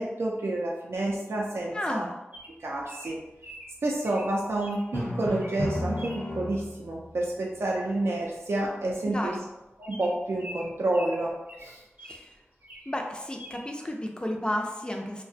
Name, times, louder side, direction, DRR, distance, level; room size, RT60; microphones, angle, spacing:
voice 1, 0.0-2.1 2.6-3.2 3.8-9.3 9.8-11.3 11.6-11.8, right 1 dB, 70° right, -2 dB, 0.3 m, -29 dB
voice 2, 1.7-2.2 9.0-9.4 12.0-12.4 12.9-15.2, left 1 dB, 20° left, 2 dB, 0.4 m, -32 dB
Bird vocalization bird call bird song, 2.3-4.9 5.3-5.7 6.0-6.3 7.7-8.0 8.2-8.3 8.6-8.8 9.2-9.3 9.8-12.3 12.6-13.0 13.4-13.6, equal, 40° right, 0.7 m, -45 dB
Drum, 4.9-6.9, left 1 dB, 65° left, 0.7 m, -32 dB
2.4 x 2.1 x 2.6 m, 1.0 s
wide cardioid pair, 55°, 5 cm